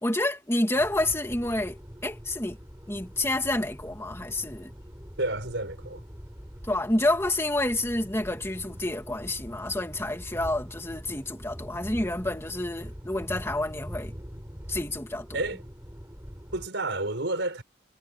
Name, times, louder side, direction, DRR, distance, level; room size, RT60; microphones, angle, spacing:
voice 1, 0.0-2.6 2.9-4.7 6.7-14.1 14.7-15.3, left 1 dB, 15° left, 2.6 m, -29 dB
sound 1, 0.7-16.7, equal, 15° right, 6.5 m, -43 dB
voice 2, 5.2-6.0 15.3-15.6 16.5-17.6, right 2 dB, 70° right, 5.1 m, -30 dB
head